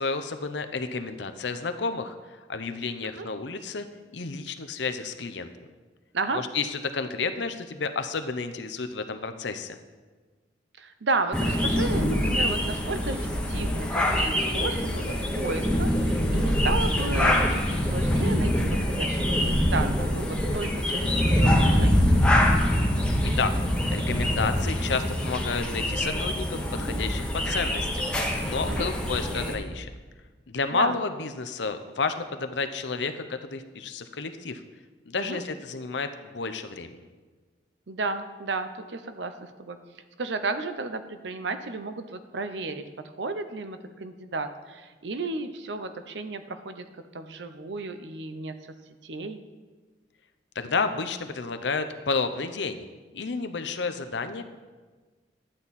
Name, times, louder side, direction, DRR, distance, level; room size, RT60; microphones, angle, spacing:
voice 1, 0.0-3.9 4.1-5.7 6.3-9.8 23.4-23.5 23.9-28.1 28.4-29.9 30.5-34.6 35.1-37.0 50.5-52.8 53.1-54.4, left 4 dB, 80° left, 9 dB, 0.7 m, -31 dB
voice 2, 10.8-22.2 28.7-28.9 30.7-31.0 35.2-35.4 37.9-39.8 40.2-46.8 47.1-48.7 49.0-49.4, right 3 dB, 80° right, 9 dB, 0.7 m, -33 dB
sound 1, 11.3-29.5, equal, 5° left, 1.0 m, -24 dB
11.5 x 8.7 x 4.2 m, 1.4 s
head